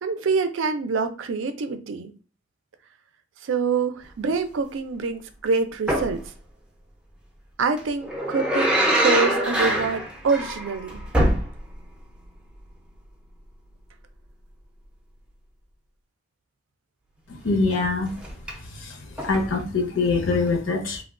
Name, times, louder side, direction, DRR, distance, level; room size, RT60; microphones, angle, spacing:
voice 1, 0.0-2.1 3.4-6.2 7.6-11.0, right 4 dB, 75° right, 0.4 m, -26 dB
sound 1, 5.9-6.2 7.8-11.9 12.2-12.3 18.1-18.5 19.2-19.6 20.5-20.6, right 1 dB, 5° right, 0.4 m, -24 dB
voice 2, 17.4-18.1 19.2-21.0, left 3 dB, 75° left, 0.7 m, -23 dB
3.3 x 2.2 x 2.4 m
head